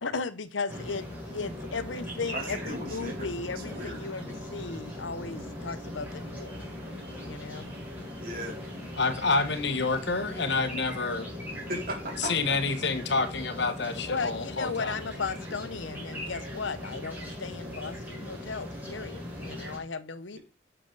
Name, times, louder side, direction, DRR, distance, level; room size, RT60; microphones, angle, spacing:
voice 1, 0.0-6.5 7.3-7.7 14.0-20.4, left 4 dB, 90° left, 0.9 m, -36 dB
sound 1, 0.7-19.8, left 1 dB, 10° right, 4.5 m, -39 dB
voice 2, 2.3-4.0 8.2-8.6 11.7-12.5, right 1 dB, 50° right, 3.7 m, -37 dB
voice 3, 9.0-11.3 12.2-15.0, left 3 dB, 65° left, 1.4 m, -28 dB
10.5 x 6.6 x 4.0 m
head